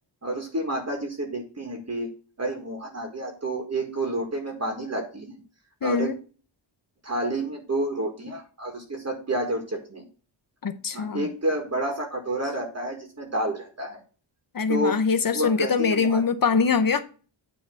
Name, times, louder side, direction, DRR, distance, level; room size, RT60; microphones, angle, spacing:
voice 1, 0.2-2.1 2.4-5.3 5.8-6.1 7.0-10.0 10.9-14.0 14.7-15.0 15.3-16.2, right 1 dB, 35° right, 2 dB, 1.7 m, -29 dB
voice 2, 5.8-6.2 10.6-11.3 14.5-17.0, left 5 dB, 50° left, 9 dB, 0.8 m, -23 dB
9.3 x 3.4 x 6.3 m, 0.37 s
wide cardioid pair, 135°, 44 cm